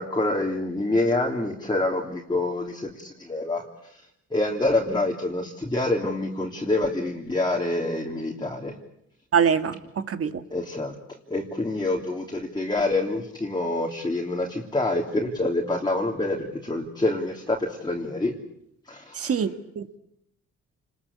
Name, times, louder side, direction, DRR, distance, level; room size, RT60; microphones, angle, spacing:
voice 1, 0.0-3.6 3.9-4.0 4.3-8.7 10.5-10.9 11.3-18.3 18.9-19.4, left 2 dB, 15° left, -2 dB, 3.3 m, -26 dB
voice 2, 9.3-10.4 19.1-20.0, right 7 dB, 50° right, 10 dB, 1.9 m, -24 dB
28.5 x 21.0 x 8.5 m, 0.76 s
cardioid pair, 90°, 30 cm